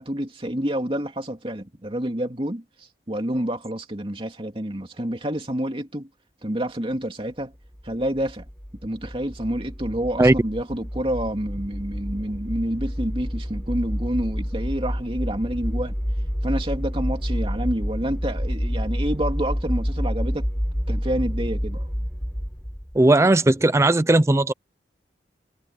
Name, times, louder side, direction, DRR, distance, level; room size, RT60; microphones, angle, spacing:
voice 1, 0.0-6.1 6.4-7.5 7.8-8.5 8.8-16.0 16.4-20.5 20.9-21.9, right 1 dB, 30° right, 2.7 m, -28 dB
sound 1, 7.7-23.0, equal, 10° left, 4.8 m, -28 dB
voice 2, 22.9-24.5, right 2 dB, 15° right, 0.5 m, -17 dB
head